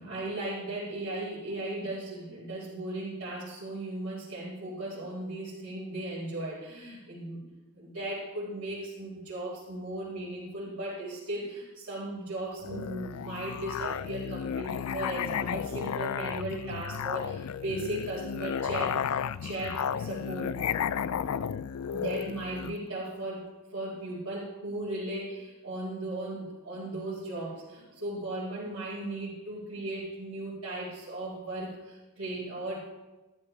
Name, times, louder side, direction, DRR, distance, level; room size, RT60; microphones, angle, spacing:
voice 1, 0.0-7.4 7.7-20.5 20.9-21.2 21.9-32.8, right 1 dB, 80° right, -10 dB, 4.7 m, -37 dB
Musical instrument, 12.6-22.8, left 8 dB, 75° left, 0.4 m, -33 dB
14.0 x 12.5 x 3.3 m, 1.1 s
head